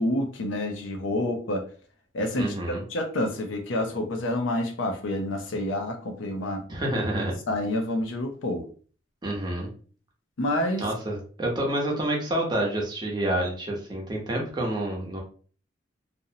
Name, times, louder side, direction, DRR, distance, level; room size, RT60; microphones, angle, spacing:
voice 1, 0.0-1.6 2.1-2.5 2.9-6.6 7.5-8.7 10.4-10.8, left 1 dB, 85° left, 5 dB, 0.5 m, -28 dB
voice 2, 2.4-2.8 6.7-7.3 9.2-9.7 10.8-15.2, right 1 dB, 25° right, -1 dB, 0.7 m, -28 dB
2.5 x 2.0 x 2.7 m, 0.42 s
head